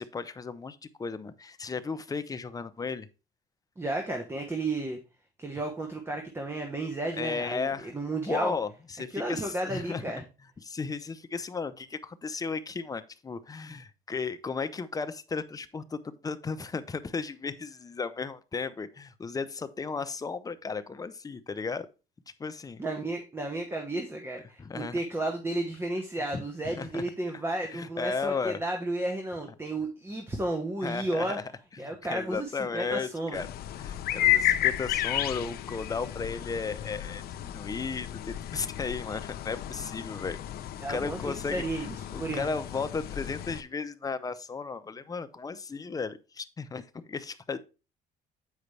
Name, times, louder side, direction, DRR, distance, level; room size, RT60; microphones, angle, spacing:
voice 1, 0.0-3.1 7.2-7.9 8.3-10.2 10.6-21.9 22.4-22.8 24.6-25.0 26.2-27.0 27.6-28.6 30.8-31.4 31.7-33.5 33.8-40.4 40.9-47.6, left 4 dB, 20° left, 0.6 m, -35 dB
voice 2, 3.8-5.0 5.4-8.5 9.1-10.2 22.8-31.4 31.8-33.4 40.8-42.5, right 2 dB, 15° right, 1.1 m, -33 dB
sound 1, 33.3-43.6, left 12 dB, 65° left, 0.6 m, -32 dB
8.2 x 5.0 x 3.2 m
cardioid pair, 110°, 17 cm